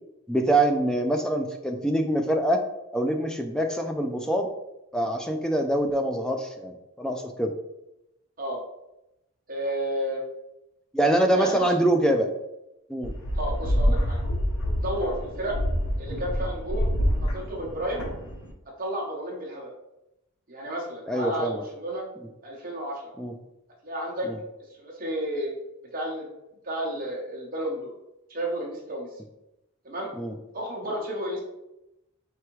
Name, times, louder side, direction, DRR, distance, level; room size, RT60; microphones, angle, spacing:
voice 1, 0.3-2.6 2.9-4.5 4.9-7.5 10.9-12.3 12.9-13.1 21.1-21.6 23.2-23.3 24.3-24.4 30.2-30.3, right 1 dB, 5° left, 4 dB, 0.3 m, -24 dB
voice 2, 9.5-10.2 11.3-11.7 13.3-14.2 14.8-15.6 16.0-16.9 17.2-18.0 18.8-19.7 20.5-22.0 22.4-23.0 23.8-24.3 24.7-25.5 25.9-26.3 26.6-27.9 28.3-29.1 29.8-30.1 30.5-31.4, equal, 40° right, -3 dB, 1.0 m, -32 dB
sound 1, 13.0-18.5, equal, 80° left, 0.8 m, -27 dB
4.7 x 3.4 x 3.1 m, 0.91 s
head